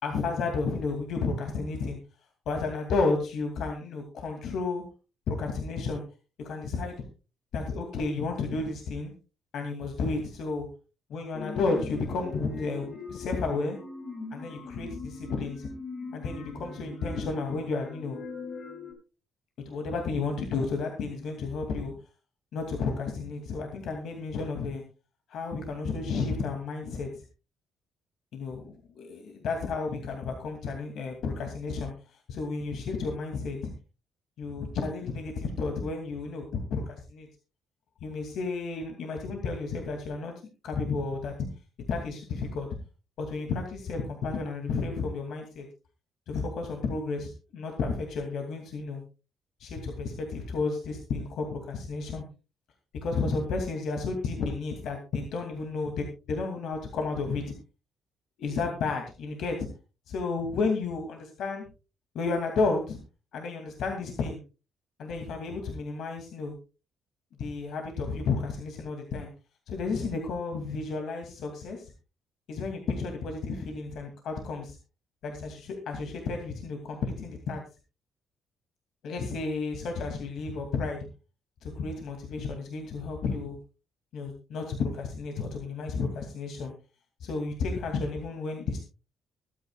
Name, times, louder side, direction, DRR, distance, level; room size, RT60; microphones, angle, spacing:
voice 1, 0.0-2.0 2.5-4.8 5.3-6.0 6.4-6.9 7.5-9.1 9.5-10.7 11.1-13.8 14.3-15.7 16.1-18.2 19.7-21.9 22.5-24.8 25.3-27.2 28.3-31.9 32.3-33.7 34.4-37.3 38.0-40.3 40.6-41.3 41.9-42.7 43.2-45.6 46.3-49.0 49.6-52.2 53.0-57.4 58.4-59.7 60.1-61.6 62.1-63.0 63.3-64.4 65.0-66.5 67.4-69.3 69.7-71.9 72.5-74.8 75.2-77.6 79.0-81.0 81.6-83.6 84.1-86.7 87.2-88.8, left 4 dB, 75° left, 3 dB, 2.5 m, -32 dB
sound 1, 11.3-18.9, left 3 dB, 50° left, 6.8 m, -41 dB
23.5 x 9.4 x 2.4 m, 0.32 s
cardioid pair, 100°, 0 cm